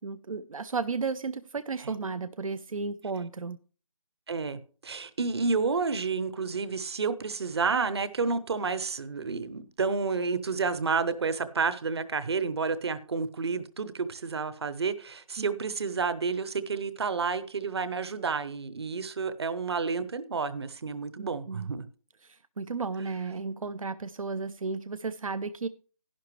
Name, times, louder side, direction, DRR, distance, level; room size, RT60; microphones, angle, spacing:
voice 1, 0.0-3.6 15.4-15.5 21.2-21.7 22.2-25.7, right 4 dB, 75° right, 0.6 m, -34 dB
voice 2, 4.3-21.9, right 4 dB, 50° right, 0.9 m, -30 dB
11.5 x 10.5 x 3.2 m
figure-of-eight pair, 160°, 17 cm